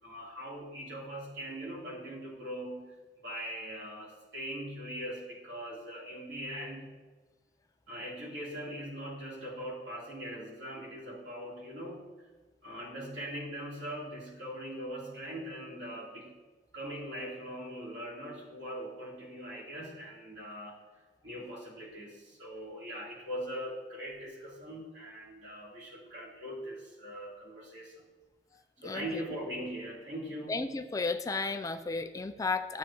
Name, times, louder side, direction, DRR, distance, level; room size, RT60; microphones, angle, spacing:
voice 1, 0.0-2.9 3.2-6.9 7.9-12.0 12.6-16.3 16.7-20.8 21.2-28.0 28.8-30.5, equal, 70° right, -6 dB, 3.4 m, -41 dB
voice 2, 28.8-29.2 30.5-32.8, left 3 dB, 20° left, 8 dB, 0.3 m, -33 dB
14.0 x 7.4 x 2.9 m, 1.3 s
head